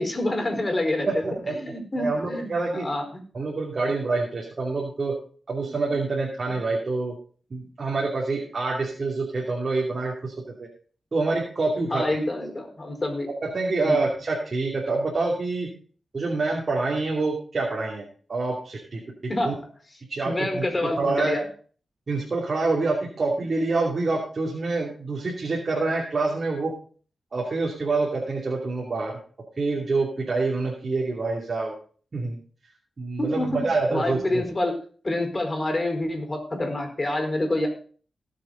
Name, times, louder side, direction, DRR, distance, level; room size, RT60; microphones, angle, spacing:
voice 1, 0.0-3.2 11.8-13.3 13.8-14.0 19.3-19.5 20.2-21.4 33.2-33.6 33.9-34.8 35.0-37.7, left 1 dB, 35° left, 4 dB, 4.4 m, -27 dB
voice 2, 1.1-1.5 2.0-2.9 3.3-5.1 5.5-7.1 7.5-10.3 10.6-10.7 11.1-12.0 13.4-15.7 16.1-19.0 19.4-19.5 20.1-21.4 22.1-26.7 27.3-29.2 29.6-31.7 32.1-32.4 33.0-34.4, right 3 dB, 50° right, -2 dB, 2.7 m, -26 dB
18.0 x 7.0 x 3.9 m, 0.43 s
cardioid pair, 55°, 0 cm